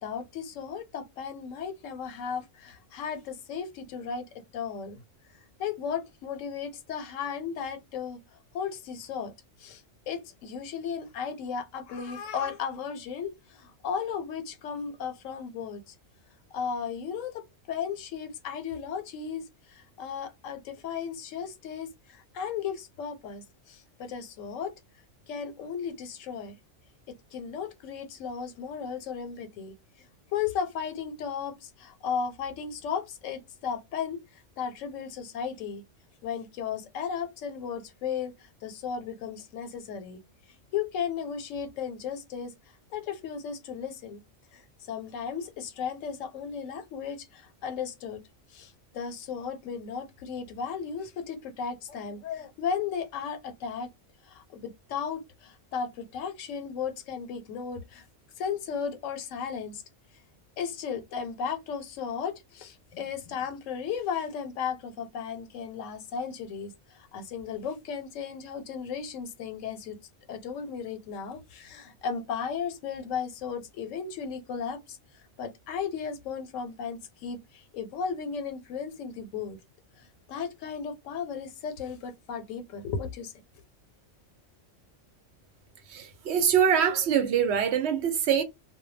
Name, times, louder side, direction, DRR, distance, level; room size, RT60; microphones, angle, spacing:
voice 1, 0.0-4.3 4.5-5.0 5.6-8.2 8.5-9.3 9.6-15.9 16.5-19.4 19.7-24.7 25.3-26.5 27.1-29.7 30.3-34.2 34.6-35.8 36.2-40.2 40.7-42.5 42.9-44.2 44.5-44.6 44.9-48.2 48.5-53.9 54.2-58.0 58.4-59.8 60.6-70.0 70.3-75.0 75.4-79.6 80.0-83.3, left 6 dB, 90° left, 1.0 m, -35 dB
voice 2, 85.9-88.4, right 8 dB, 65° right, 0.8 m, -24 dB
2.1 x 2.1 x 3.1 m
omnidirectional pair, 1.3 m